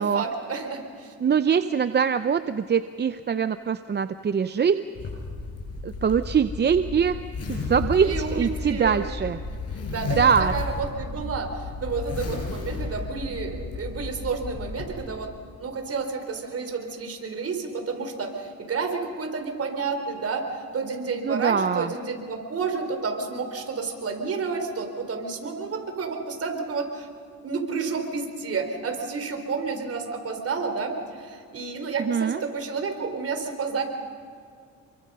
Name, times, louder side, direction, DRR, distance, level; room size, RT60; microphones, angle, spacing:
voice 1, 0.0-1.1 8.0-9.0 9.9-10.2 10.5-15.3 15.6-27.1 27.4-33.8, right 4 dB, 50° right, 5 dB, 4.1 m, -30 dB
voice 2, 1.2-4.8 5.8-7.2 7.5-9.4 10.2-10.5 21.2-21.9 32.0-32.4, right 7 dB, 35° right, 11 dB, 0.7 m, -23 dB
Zipper (clothing), 5.0-14.9, left 3 dB, 55° left, 7.2 m, -33 dB
28.0 x 23.5 x 5.6 m, 2.2 s
cardioid pair, 90°, 30 cm